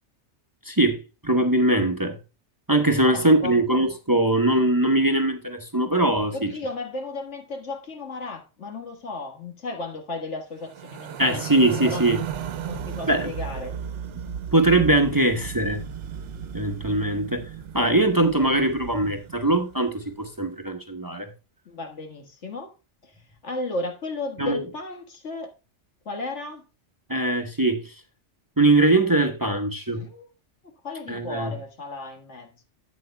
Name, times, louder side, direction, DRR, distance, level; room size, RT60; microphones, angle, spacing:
voice 1, 0.6-2.2 2.7-6.5 11.2-12.2 13.1-13.3 14.5-15.8 16.5-21.3 24.4-24.6 27.1-27.9 28.6-30.0 31.1-31.5, right 2 dB, 20° right, 0.9 m, -21 dB
voice 2, 3.0-3.6 6.3-11.4 11.8-12.1 12.7-13.8 21.7-22.7 23.0-25.5 26.1-26.6 29.9-30.3 30.8-32.6, left 2 dB, 75° left, 1.9 m, -34 dB
sound 1, 10.6-19.9, right 8 dB, 80° right, 1.0 m, -35 dB
12.0 x 8.4 x 2.2 m
omnidirectional pair, 1.2 m